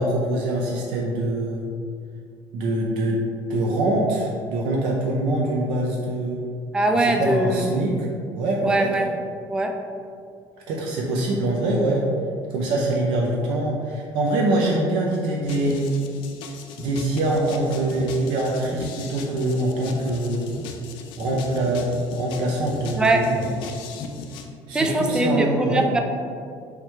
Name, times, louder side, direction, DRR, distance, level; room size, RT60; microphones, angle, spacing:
voice 1, 0.0-1.6 2.5-3.2 3.5-6.4 6.9-8.1 8.4-8.9 10.7-12.0 12.5-15.9 16.8-20.5 21.2-23.5 24.7-25.8, right 1 dB, 80° right, -2 dB, 0.6 m, -24 dB
voice 2, 6.7-7.9 8.6-9.1 9.5-9.8 22.9-23.3 24.7-26.0, right 2 dB, 10° right, 4 dB, 0.3 m, -21 dB
sound 1, 15.4-24.4, left 3 dB, 70° left, 0.5 m, -37 dB
4.9 x 3.1 x 3.2 m, 2.3 s
cardioid pair, 120°, 9 cm